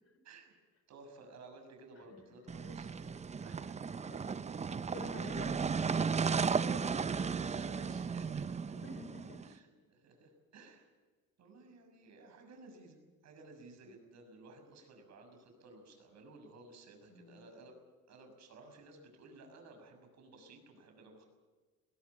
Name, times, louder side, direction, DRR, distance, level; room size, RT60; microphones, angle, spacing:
voice 1, 0.2-0.5 0.9-3.2 3.4-3.8 5.2-5.4 6.4-8.8 9.4-10.9 11.4-17.8 18.1-21.2, right 2 dB, 60° right, 5 dB, 6.5 m, -55 dB
sound 1, 2.5-9.5, right 5 dB, 20° right, 0.6 m, -35 dB
voice 2, 4.1-4.7 4.9-5.9 8.8-9.6 17.1-17.4, left 3 dB, 50° left, 9 dB, 3.3 m, -51 dB
20.0 x 18.0 x 8.6 m, 1.4 s
cardioid pair, 100°, 31 cm